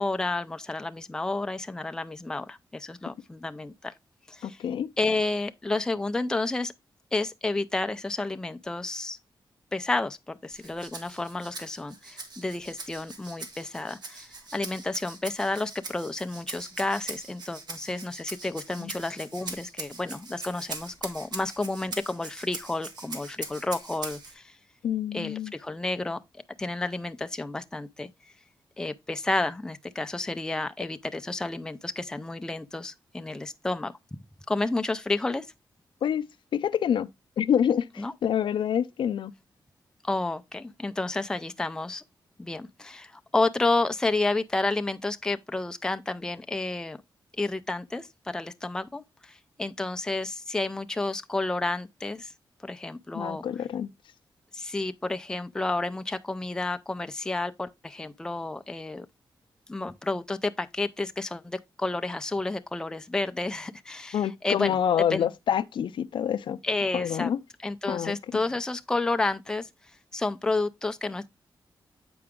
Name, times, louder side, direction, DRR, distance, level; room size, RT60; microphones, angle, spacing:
voice 1, 0.0-3.9 4.3-4.6 5.0-6.7 7.1-9.2 9.7-24.6 25.1-26.2 26.6-28.1 28.8-33.9 34.5-35.5 38.0-38.1 40.0-42.0 42.4-47.0 47.4-52.3 52.6-53.4 54.5-59.1 59.7-64.8 65.1-65.3 66.6-67.3 67.6-69.7 70.1-71.3, left 2 dB, 10° left, 0.4 m, -30 dB
voice 2, 4.4-4.9 18.8-18.9 24.8-25.5 36.0-36.3 36.5-37.1 37.4-39.3 53.1-53.9 64.1-66.6 66.9-67.4 67.9-68.2, left 9 dB, 75° left, 0.4 m, -27 dB
Rattle (instrument), 10.5-24.3, right 3 dB, 55° right, 1.3 m, -41 dB
7.7 x 4.7 x 3.5 m
wide cardioid pair, 155°, 8 cm